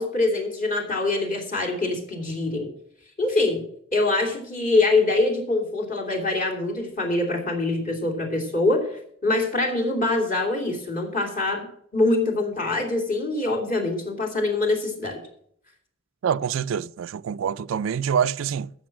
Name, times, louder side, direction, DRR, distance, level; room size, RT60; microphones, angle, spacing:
voice 1, 0.0-2.7 3.2-3.6 3.9-11.6 11.9-15.2, left 2 dB, 40° left, 2.8 m, -24 dB
voice 2, 16.2-18.7, right 7 dB, 75° right, 0.4 m, -26 dB
13.5 x 6.7 x 6.0 m
head